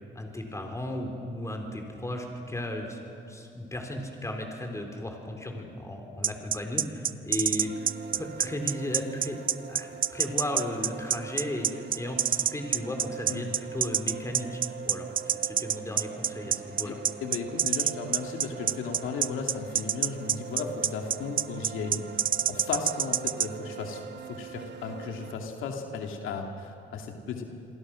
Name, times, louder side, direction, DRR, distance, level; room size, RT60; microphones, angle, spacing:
voice 1, 0.1-3.0 3.3-7.9 8.2-9.4 9.7-17.0, left 1 dB, 15° left, 3 dB, 4.2 m, -35 dB
sound 1, 6.2-23.5, right 9 dB, 45° right, 0.6 m, -26 dB
sound 2, 7.6-25.3, right 8 dB, 60° right, 1.3 m, -43 dB
voice 2, 17.2-27.5, left 5 dB, 85° left, 3 dB, 2.4 m, -35 dB
28.0 x 22.5 x 6.3 m, 2.7 s
cardioid pair, 90°, 20 cm